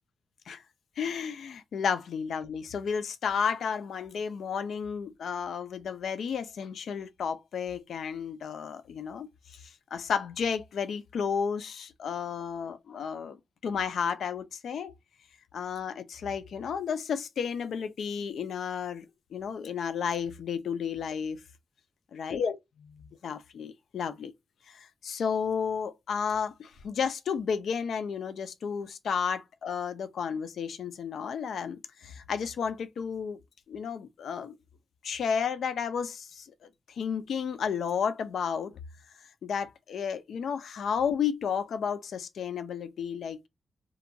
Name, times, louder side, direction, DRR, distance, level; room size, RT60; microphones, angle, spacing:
voice 1, 1.0-9.3 9.9-14.9 15.5-19.1 19.3-21.4 22.1-23.0 23.2-24.3 24.7-33.4 33.7-34.5 35.0-36.5 37.0-38.7 39.4-43.5, left 6 dB, 75° left, 0.3 m, -32 dB
2.8 x 2.2 x 2.5 m
wide cardioid pair, 150°, 0 cm